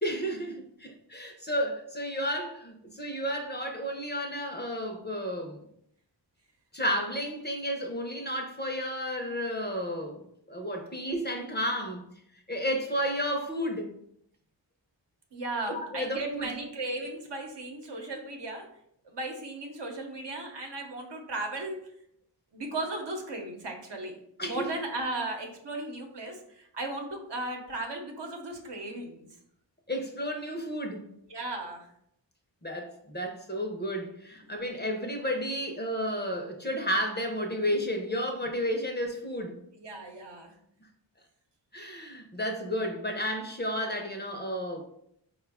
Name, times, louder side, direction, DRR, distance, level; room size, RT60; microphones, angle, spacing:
voice 1, 0.0-5.6 6.7-10.2 10.5-12.0 12.5-13.9 15.7-16.6 24.4-24.8 29.9-31.1 32.6-39.6 41.7-44.8, equal, 25° left, 2 dB, 0.6 m, -32 dB
voice 2, 15.3-18.7 19.0-21.8 22.5-24.1 24.4-29.3 31.3-31.9 39.8-40.5, right 2 dB, 65° right, 2 dB, 0.8 m, -36 dB
4.5 x 2.3 x 3.4 m, 0.73 s
wide cardioid pair, 65°, 45 cm